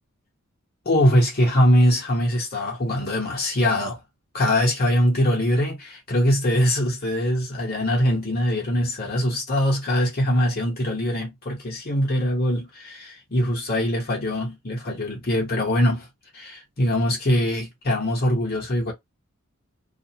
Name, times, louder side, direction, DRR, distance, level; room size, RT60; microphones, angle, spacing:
voice 1, 0.8-4.0 4.3-16.1 16.3-18.9, equal, 45° left, 1.1 m, -22 dB
2.5 x 2.4 x 2.9 m
head